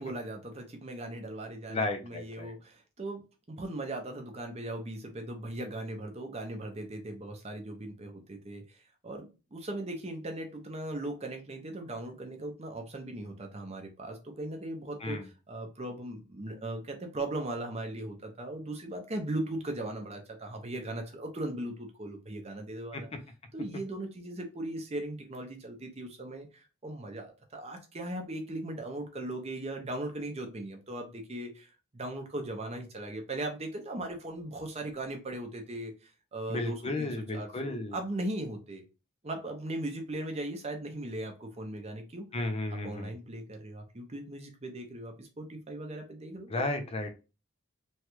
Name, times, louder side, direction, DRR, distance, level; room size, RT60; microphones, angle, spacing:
voice 1, 0.0-23.1 23.5-38.8 39.2-42.3 42.7-46.7, right 1 dB, 30° right, 4 dB, 0.6 m, -38 dB
voice 2, 1.7-2.5 15.0-15.3 22.9-23.0 36.5-38.0 42.3-43.1 46.5-47.1, left 2 dB, 25° left, 5 dB, 0.5 m, -33 dB
3.1 x 2.3 x 2.9 m, 0.31 s
head